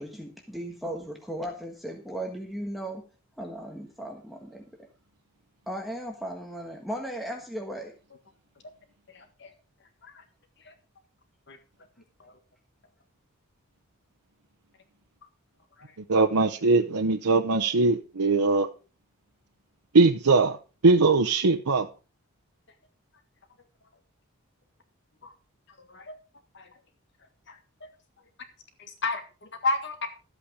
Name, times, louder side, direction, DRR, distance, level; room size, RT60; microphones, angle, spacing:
voice 1, 0.0-3.0 3.4-4.6 5.7-7.9, right 1 dB, ahead, 1.4 m, -36 dB
voice 2, 9.1-9.5 10.0-10.2 10.6-10.7 11.5-11.6 12.2-12.3 15.8-15.9 25.2-25.3 25.9-26.2 26.5-26.7 27.5-27.6 28.8-30.1, left 3 dB, 50° left, 1.7 m, -33 dB
voice 3, 16.1-18.7 19.9-20.6 20.8-21.9, right 3 dB, 85° right, 0.8 m, -21 dB
13.0 x 8.4 x 5.0 m
head